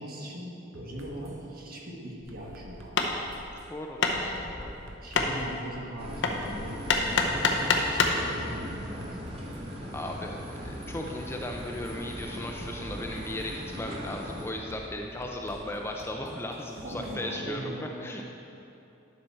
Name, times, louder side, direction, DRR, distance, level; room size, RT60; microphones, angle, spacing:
voice 1, 0.0-3.2 4.0-4.3 5.0-9.6 15.7-15.8 16.8-17.9, equal, 50° right, -2 dB, 1.4 m, -40 dB
sound 1, 0.7-1.4 2.3-3.7 4.3-5.5 6.4-7.7 8.2-9.7 10.6-11.9 12.6-13.8 14.7-17.2, right 1 dB, 80° right, 0.9 m, -50 dB
Hammer, 2.2-8.3, left 4 dB, 65° left, 0.8 m, -28 dB
voice 2, 3.7-4.9 9.9-17.7 18.0-18.2, left 1 dB, 10° left, 1 dB, 0.5 m, -36 dB
sound 2, 6.0-14.5, equal, 30° right, 1.2 m, -39 dB
10.5 x 6.0 x 4.3 m, 2.7 s
head